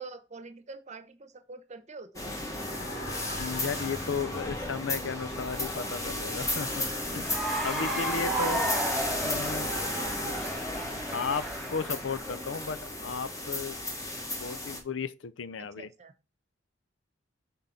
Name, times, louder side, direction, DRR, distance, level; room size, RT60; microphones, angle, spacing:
voice 1, 0.0-2.3 8.4-8.5 15.6-16.1, right 4 dB, 40° right, 0.9 m, -45 dB
sound 1, 2.2-14.8, left 1 dB, 15° left, 1.6 m, -34 dB
sound 2, 2.5-8.8, left 2 dB, 60° left, 1.6 m, -44 dB
voice 2, 3.4-6.9 7.1-7.3 7.6-8.7 9.2-9.7 10.2-10.4 11.1-13.8 14.4-15.9, left 5 dB, 80° left, 0.5 m, -34 dB
Cheering / Applause, 7.2-12.3, right 1 dB, ahead, 2.2 m, -33 dB
6.8 x 3.8 x 5.7 m
head